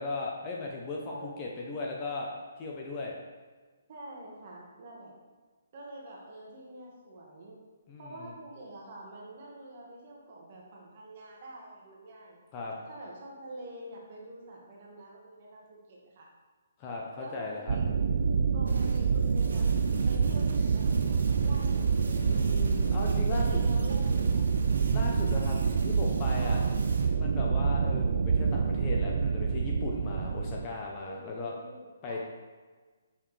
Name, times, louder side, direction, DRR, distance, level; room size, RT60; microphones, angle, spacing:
voice 1, 0.0-2.3 2.6-3.1 7.9-8.3 12.5-12.8 16.8-17.8 22.2-23.6 24.9-25.5 25.8-26.6 27.1-31.5 32.0-32.2, left 3 dB, 20° left, -1 dB, 0.6 m, -37 dB
voice 2, 1.0-1.5 3.9-5.1 5.7-7.6 8.0-12.4 12.9-16.3 17.2-18.0 18.5-22.6 23.3-24.5 25.0-25.4 26.4-26.7 31.0-32.2, right 1 dB, 35° right, -2 dB, 1.4 m, -46 dB
sound 1, 17.7-30.7, right 5 dB, 50° right, 0.3 m, -27 dB
sound 2, 18.7-27.1, right 2 dB, 80° right, 1.2 m, -48 dB
6.9 x 5.6 x 3.2 m, 1.4 s
hypercardioid pair, 170°, 0 cm